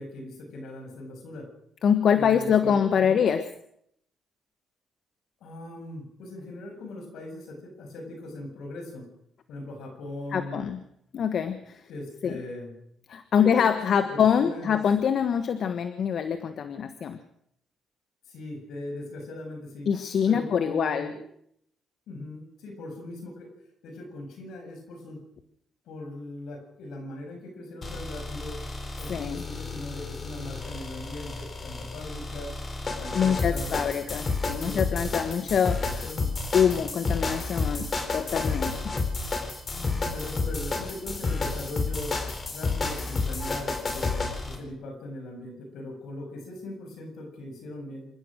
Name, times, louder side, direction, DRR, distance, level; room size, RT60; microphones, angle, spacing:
voice 1, 0.0-1.5 2.2-3.2 5.4-9.1 9.5-10.7 11.9-12.7 13.4-14.8 18.2-19.9 20.2-21.2 22.1-23.5 23.8-25.2 25.9-28.6 29.0-32.5 33.0-33.8 34.6-34.9 36.0-36.3 39.7-48.1, left 1 dB, 80° left, 3 dB, 7.6 m, -39 dB
voice 2, 1.8-3.4 10.3-10.8 11.1-11.8 12.2-12.4 13.1-17.2 19.9-21.1 29.1-29.4 33.1-36.0 36.5-39.0, left 7 dB, 60° left, 10 dB, 1.3 m, -25 dB
sound 1, 27.8-44.6, left 3 dB, 35° left, 4.5 m, -31 dB
27.5 x 14.5 x 6.5 m, 0.73 s
cardioid pair, 90°, 0 cm